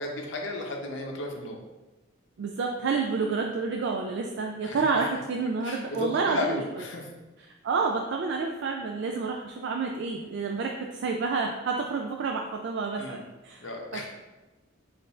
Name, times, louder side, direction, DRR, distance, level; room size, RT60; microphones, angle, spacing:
voice 1, 0.0-1.6 4.6-4.8 5.6-7.1 13.0-13.2 13.6-14.1, left 2 dB, 65° left, 1 dB, 0.7 m, -33 dB
voice 2, 2.4-6.8 7.4-14.1, right 4 dB, 65° right, 1 dB, 0.3 m, -29 dB
4.3 x 2.5 x 4.2 m, 1.1 s
head